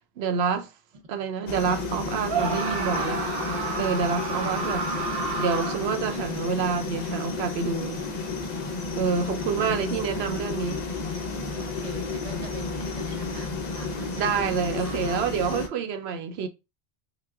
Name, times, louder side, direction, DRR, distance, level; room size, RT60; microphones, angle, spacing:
voice 1, 0.2-0.7 1.1-3.2 3.8-4.8 5.4-8.0 9.0-10.8 14.1-16.5, right 6 dB, 90° right, 0.9 m, -27 dB
sound 1, 1.5-15.7, left 4 dB, 50° left, 0.6 m, -32 dB
Screaming, 2.3-6.1, right 4 dB, 65° right, 0.9 m, -30 dB
voice 2, 2.4-3.7 9.1-9.9 11.6-14.3 14.7-15.3, right 2 dB, 40° right, 0.7 m, -43 dB
5.3 x 2.2 x 2.4 m
omnidirectional pair, 1.1 m